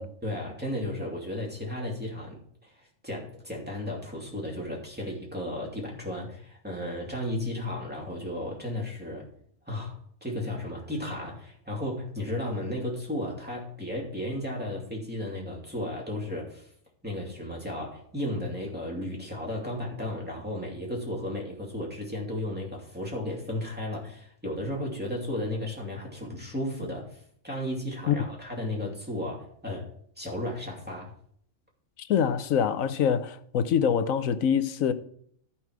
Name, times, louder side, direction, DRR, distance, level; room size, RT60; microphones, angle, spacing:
voice 1, 0.2-9.3 9.7-16.7 17.0-29.9 30.2-31.1, left 1 dB, 5° right, 2.7 m, -34 dB
voice 2, 32.0-34.9, left 8 dB, 90° left, 1.2 m, -25 dB
12.5 x 5.9 x 4.7 m
omnidirectional pair, 1.4 m